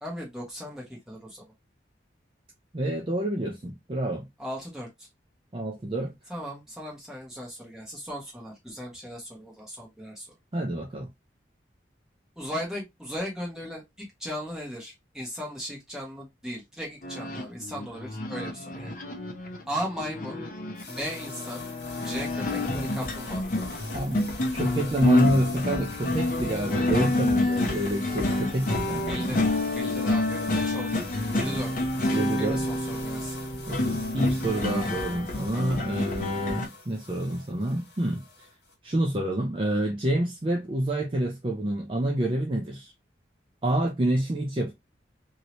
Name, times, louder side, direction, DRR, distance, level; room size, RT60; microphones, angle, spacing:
voice 1, 0.0-1.5 4.4-5.1 6.3-10.3 12.4-18.9 19.7-20.4 20.9-21.6 22.0-23.4 29.1-31.1 31.3-31.9 32.4-33.4, equal, 5° right, 1.3 m, -37 dB
voice 2, 2.7-4.3 5.5-6.1 10.5-11.1 23.9-29.4 32.0-32.6 33.7-38.5 38.8-42.9 43.6-44.7, right 1 dB, 30° right, 0.5 m, -28 dB
sound 1, 17.0-36.7, left 2 dB, 45° left, 0.6 m, -28 dB
sound 2, 20.8-38.7, left 3 dB, 70° left, 1.5 m, -44 dB
2.8 x 2.8 x 2.9 m
head